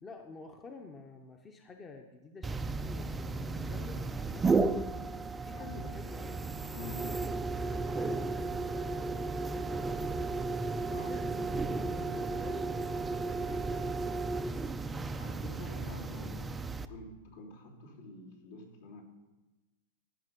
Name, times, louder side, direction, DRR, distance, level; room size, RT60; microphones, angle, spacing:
voice 1, 0.0-4.7 5.4-6.4 7.5-10.5 10.8-11.4 11.6-14.1, left 4 dB, 20° left, 4 dB, 0.8 m, -49 dB
sound 1, 2.4-16.9, right 3 dB, 15° right, 0.4 m, -34 dB
voice 2, 5.5-6.1 6.7-7.1 10.8-11.1 15.1-16.5 16.9-19.0, left 2 dB, 75° left, -3 dB, 3.0 m, -47 dB
14.5 x 5.9 x 5.4 m, 1.1 s
hypercardioid pair, 135°, 0 cm